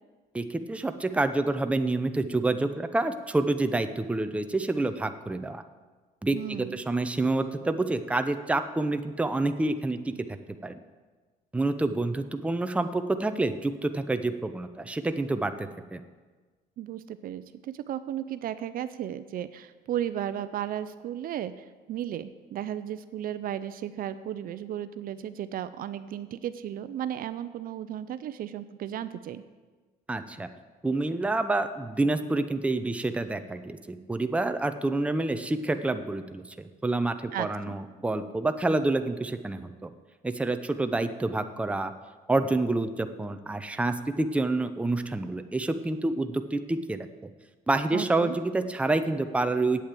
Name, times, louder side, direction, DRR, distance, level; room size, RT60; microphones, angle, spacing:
voice 1, 0.3-5.6 6.2-10.1 10.6-10.8 11.5-16.0 30.1-30.5 30.8-39.9 40.2-41.9 42.3-47.3 47.7-49.8, right 2 dB, 5° right, 9 dB, 0.6 m, -28 dB
voice 2, 6.3-6.8 16.8-29.4 37.3-37.8 47.9-48.3, right 10 dB, 60° right, 12 dB, 0.6 m, -35 dB
8.5 x 8.5 x 7.5 m, 1.3 s
cardioid pair, 110°, 17 cm